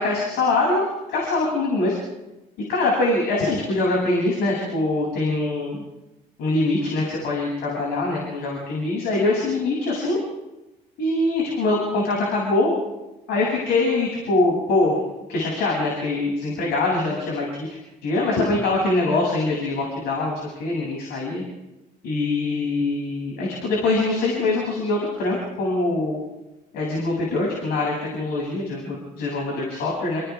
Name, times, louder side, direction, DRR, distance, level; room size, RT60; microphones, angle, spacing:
voice 1, 0.0-2.0 2.7-5.8 6.4-10.2 11.0-12.7 13.3-15.0 15.3-21.4 22.0-26.2 26.7-30.2, left 2 dB, 80° left, -3 dB, 7.9 m, -23 dB
29.0 x 28.5 x 3.7 m, 1.0 s
cardioid pair, 110°, 17 cm